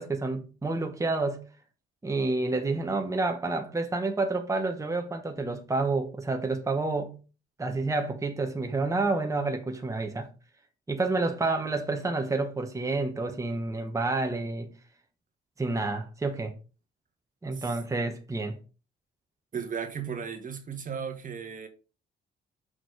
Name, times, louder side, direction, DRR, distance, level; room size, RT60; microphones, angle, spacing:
voice 1, 0.0-1.4 2.0-7.1 7.6-10.3 10.9-14.7 15.6-16.5 17.4-18.6, right 3 dB, 15° right, 1.1 m, -29 dB
voice 2, 19.5-21.7, right 7 dB, 40° right, 1.3 m, -35 dB
6.3 x 4.0 x 4.9 m
cardioid pair, 90°, 20 cm